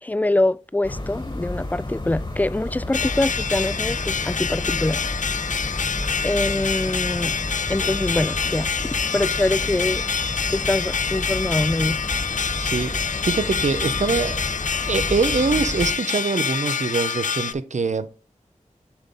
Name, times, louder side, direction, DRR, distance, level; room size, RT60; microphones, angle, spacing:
voice 1, 0.0-5.0 6.2-7.3 7.7-8.7 9.1-10.0 10.5-12.0, left 2 dB, 10° left, 0.3 m, -24 dB
sound 1, 0.8-15.9, left 1 dB, 35° left, 1.6 m, -31 dB
sound 2, 2.9-17.5, left 6 dB, 70° left, 0.5 m, -26 dB
voice 2, 12.6-13.0 13.2-14.4 14.9-18.1, right 4 dB, 65° right, 0.7 m, -24 dB
7.1 x 3.9 x 5.6 m
wide cardioid pair, 50°, 13 cm